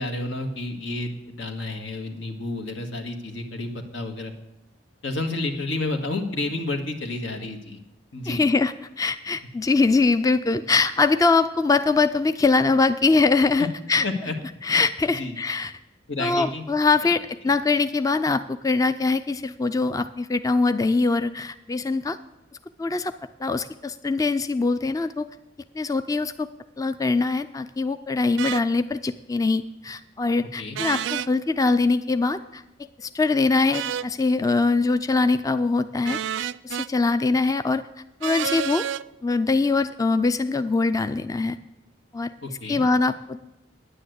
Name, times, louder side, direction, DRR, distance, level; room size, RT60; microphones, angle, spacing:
voice 1, 0.0-4.3 5.0-7.8 8.1-8.4 13.6-13.7 14.0-14.4 14.7-14.8 15.2-15.4 16.1-16.6 30.6-30.8 42.4-42.8, left 2 dB, 85° left, 4 dB, 1.8 m, -30 dB
voice 2, 8.3-14.0 14.6-15.7 16.2-22.2 22.8-23.1 23.4-25.3 25.7-26.5 26.8-37.8 38.2-38.8 39.2-41.6 42.1-42.3 42.7-43.4, left 3 dB, 20° left, 11 dB, 0.3 m, -23 dB
sound 1, 28.4-28.6 30.7-31.3 33.7-34.1 36.0-36.9 38.2-39.0, right 9 dB, 85° right, 0.3 m, -29 dB
10.0 x 9.8 x 8.0 m, 0.90 s
head